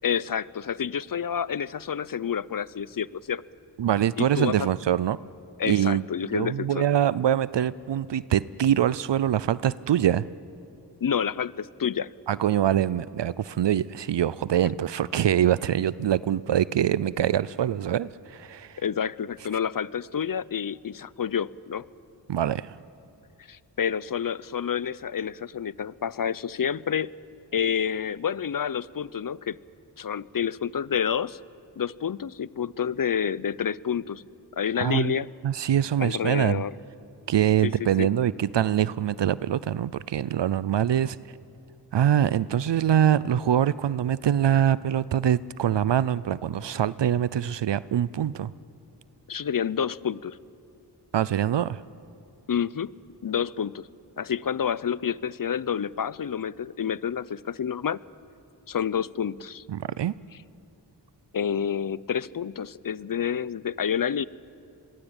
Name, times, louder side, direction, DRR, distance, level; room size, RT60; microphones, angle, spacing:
voice 1, 0.0-3.4 4.2-4.7 5.6-6.9 11.0-12.1 18.8-21.9 23.5-27.1 27.5-29.6 30.0-31.4 31.8-34.2 34.6-35.3 36.0-36.7 37.6-37.7 38.0-38.1 49.3-50.4 52.5-52.9 53.2-53.9 54.2-58.0 58.7-59.6 61.3-64.2, left 8 dB, 50° left, 20 dB, 0.6 m, -29 dB
voice 2, 3.8-5.2 5.6-6.0 6.3-10.3 12.3-18.8 22.3-22.8 34.8-35.1 35.4-36.6 37.3-41.2 41.9-48.5 51.1-51.8 59.7-60.1, right 10 dB, 70° right, 19 dB, 0.6 m, -24 dB
25.0 x 22.0 x 8.9 m, 2.6 s
wide cardioid pair, 55°, 44 cm